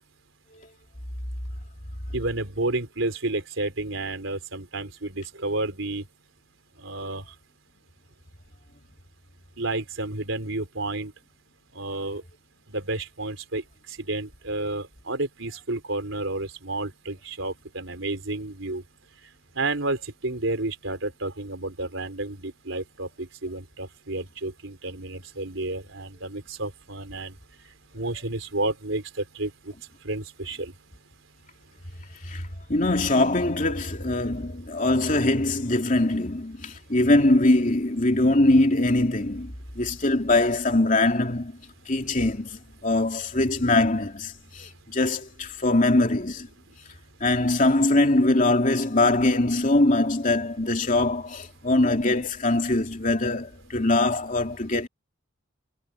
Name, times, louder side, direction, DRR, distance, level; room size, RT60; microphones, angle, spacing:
voice 1, 2.1-6.0 6.8-7.2 9.6-11.1 11.7-12.2 12.7-18.8 19.6-27.3 27.9-29.7 30.0-30.7, right 2 dB, 80° right, 3.9 m, -31 dB
voice 2, 32.2-41.6 41.9-46.5 47.2-54.9, left 2 dB, 40° left, 2.9 m, -22 dB
head